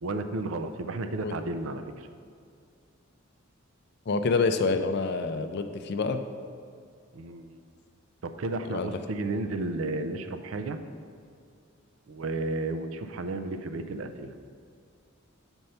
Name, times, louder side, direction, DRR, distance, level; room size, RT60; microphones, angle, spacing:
voice 1, 0.0-2.1 7.1-7.6 8.2-10.8 12.1-14.3, right 2 dB, 70° right, 9 dB, 0.5 m, -33 dB
voice 2, 4.1-6.2 8.7-8.9, left 4 dB, 50° left, 8 dB, 0.4 m, -27 dB
6.5 x 4.5 x 5.6 m, 2.3 s
head